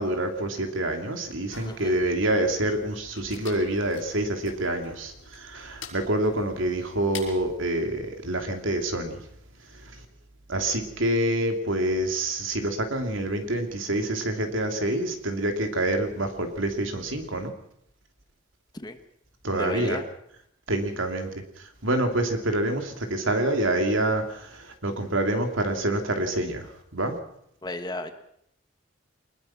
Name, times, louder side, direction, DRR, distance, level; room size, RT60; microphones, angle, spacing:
voice 1, 0.0-9.2 9.8-9.9 10.5-17.5 19.4-20.0 20.7-21.3 21.6-27.2, right 1 dB, 75° right, 5 dB, 3.0 m, -27 dB
sound 1, 1.5-7.6, left 5 dB, 70° left, 6.1 m, -45 dB
voice 2, 1.6-2.0 18.8-19.0 19.5-20.0 27.6-28.1, left 1 dB, 20° left, 8 dB, 1.4 m, -32 dB
23.5 x 20.5 x 6.0 m, 0.71 s
head